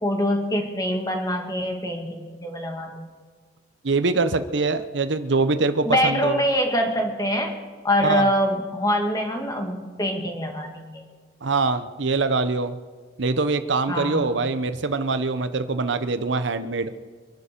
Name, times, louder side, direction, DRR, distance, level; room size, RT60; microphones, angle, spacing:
voice 1, 0.0-3.1 5.8-7.6 7.8-11.0 13.9-14.3, equal, 20° left, 3 dB, 2.0 m, -24 dB
voice 2, 3.8-6.4 8.0-8.3 11.4-12.8 13.2-16.9, right 3 dB, 70° right, 11 dB, 0.8 m, -23 dB
24.5 x 11.0 x 5.2 m, 1.5 s
head